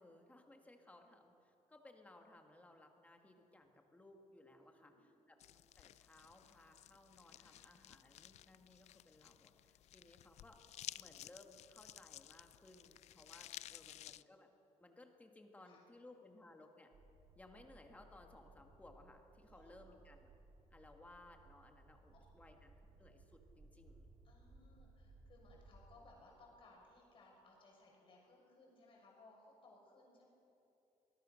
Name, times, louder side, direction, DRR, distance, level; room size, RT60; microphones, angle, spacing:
voice 1, 0.0-4.9 5.3-5.4 5.8-14.5 14.8-16.9 17.4-20.3 20.7-24.1, left 2 dB, 10° left, 3 dB, 1.9 m, -61 dB
voice 2, 4.6-5.0 7.4-7.6 13.2-13.4 13.7-13.9 15.6-15.8 19.4-20.0 22.0-22.4 24.2-30.3, left 2 dB, 45° left, -1 dB, 6.5 m, -65 dB
sound 1, 5.4-14.2, left 13 dB, 65° left, 0.4 m, -55 dB
sound 2, 16.9-26.0, right 2 dB, 55° right, 4.6 m, -63 dB
24.0 x 20.0 x 6.5 m, 2.9 s
cardioid pair, 165°, 12 cm